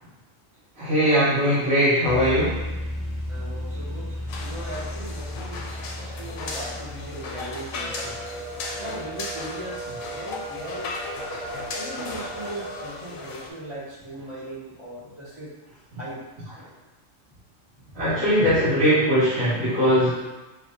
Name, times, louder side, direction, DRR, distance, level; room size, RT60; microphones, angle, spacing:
voice 1, 0.8-2.6 17.9-20.1, equal, 85° right, -14 dB, 2.1 m, -20 dB
sound 1, 2.0-11.5, left 1 dB, 55° left, 0.6 m, -35 dB
voice 2, 3.3-4.1 4.4-5.7 6.0-8.1 8.8-10.9 11.5-15.5 15.9-16.2 17.9-18.5, right 1 dB, 25° right, -9 dB, 1.0 m, -38 dB
sound 2, 4.3-13.5, left 3 dB, 85° left, 1.0 m, -36 dB
sound 3, 7.6-12.9, right 2 dB, 50° right, 1.0 m, -37 dB
3.5 x 2.9 x 2.6 m, 1.1 s
omnidirectional pair, 1.4 m